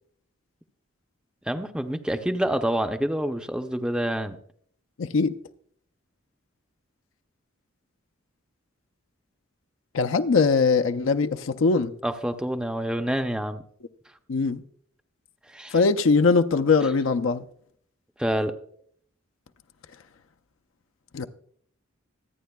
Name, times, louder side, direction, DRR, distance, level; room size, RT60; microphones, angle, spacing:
voice 1, 1.5-4.4 12.0-13.6 15.5-15.7 18.2-18.5, right 1 dB, 5° right, 0.5 m, -27 dB
voice 2, 5.0-5.3 9.9-11.9 14.3-14.6 15.7-17.4 21.1-21.3, left 4 dB, 75° left, 0.5 m, -21 dB
26.0 x 9.2 x 2.3 m
head